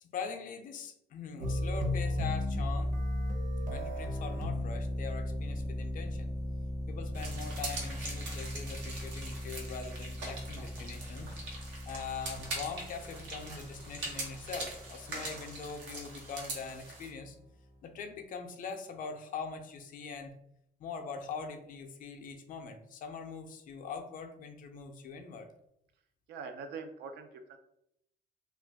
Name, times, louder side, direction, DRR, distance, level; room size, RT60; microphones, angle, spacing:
voice 1, 0.0-3.0 3.7-6.3 6.9-11.3 11.9-17.4 17.8-20.3 20.8-25.5, left 5 dB, 50° left, 5 dB, 0.4 m, -42 dB
sound 1, 1.4-17.3, left 1 dB, 45° right, 0.8 m, -37 dB
sound 2, 7.1-17.1, right 2 dB, 90° right, 0.8 m, -43 dB
voice 2, 26.3-27.6, right 5 dB, 70° right, 7 dB, 0.4 m, -43 dB
2.4 x 2.2 x 3.3 m, 0.78 s
cardioid pair, 130°, 18 cm